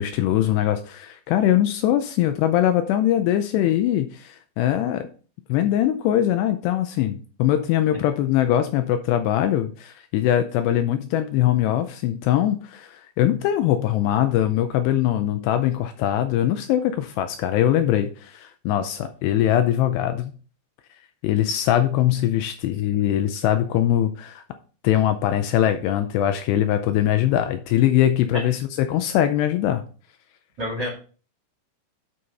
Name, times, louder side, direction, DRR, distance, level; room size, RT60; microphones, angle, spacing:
voice 1, 0.0-5.1 5.5-20.3 21.2-24.4 24.8-29.8, left 11 dB, 80° left, 8 dB, 2.6 m, -22 dB
voice 2, 30.6-30.9, equal, 40° right, 0 dB, 3.0 m, -28 dB
9.4 x 5.6 x 4.1 m, 0.39 s
omnidirectional pair, 5.2 m